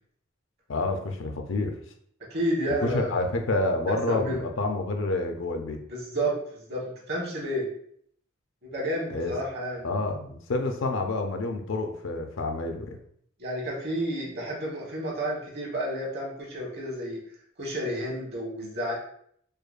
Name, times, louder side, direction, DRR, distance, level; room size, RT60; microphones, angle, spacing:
voice 1, 0.7-1.7 2.7-5.8 9.1-9.3 9.8-13.0, left 2 dB, 70° left, 4 dB, 0.5 m, -28 dB
voice 2, 2.3-3.2 3.9-4.4 5.9-7.7 8.7-9.9 13.4-17.2 17.6-19.0, equal, 55° right, -3 dB, 1.3 m, -31 dB
5.0 x 2.2 x 2.5 m, 0.66 s
head